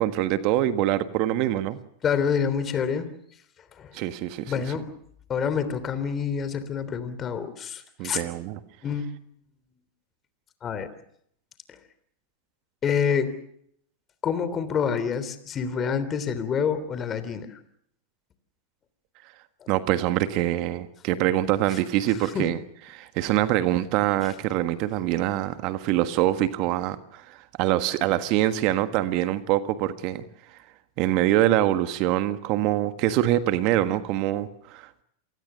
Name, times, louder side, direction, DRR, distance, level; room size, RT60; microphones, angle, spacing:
voice 1, 0.0-1.8 3.9-4.5 8.0-8.6 19.7-22.6 22.9-30.2 31.0-35.0, right 13 dB, 50° right, 11 dB, 1.5 m, -24 dB
voice 2, 2.0-3.1 3.8-3.9 4.5-5.0 5.3-8.2 8.8-9.1 10.6-10.9 12.8-13.3 14.2-17.6 21.7-21.8 22.3-22.5 24.2-24.3, left 7 dB, 30° left, 13 dB, 3.2 m, -27 dB
27.5 x 19.0 x 6.8 m, 0.70 s
hypercardioid pair, 100°, 0 cm